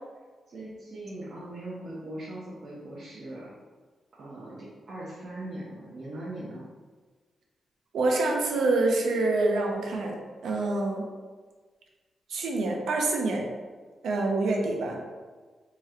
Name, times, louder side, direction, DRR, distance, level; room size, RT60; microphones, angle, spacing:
voice 1, 0.5-3.5 4.1-6.6, right 1 dB, 50° right, -9 dB, 0.8 m, -40 dB
voice 2, 7.9-10.2 10.4-11.0 12.3-13.5 14.0-15.1, right 2 dB, 85° right, 0 dB, 0.6 m, -26 dB
4.2 x 3.0 x 2.4 m, 1.4 s
wide cardioid pair, 120°, 0 cm